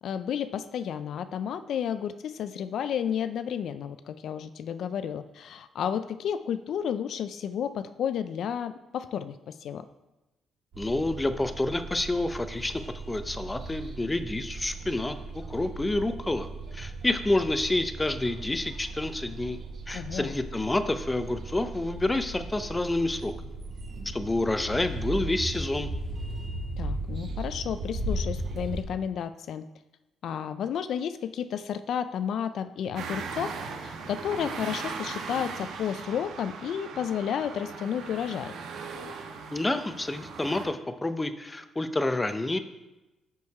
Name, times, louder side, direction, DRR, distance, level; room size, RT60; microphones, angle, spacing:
voice 1, 0.0-9.9 19.9-20.3 26.8-29.7 30.2-33.5 33.8-38.5, left 8 dB, 70° left, 12 dB, 0.3 m, -32 dB
sound 1, 10.7-28.8, right 2 dB, 55° right, 1.7 m, -37 dB
voice 2, 10.8-12.8 13.1-16.5 16.7-19.6 19.9-23.3 24.1-25.9 39.5-42.6, left 2 dB, 15° left, 10 dB, 0.6 m, -28 dB
sound 2, 33.0-40.7, right 5 dB, 85° right, 1.0 m, -38 dB
6.3 x 5.6 x 4.7 m, 1.0 s
cardioid pair, 90°, 0 cm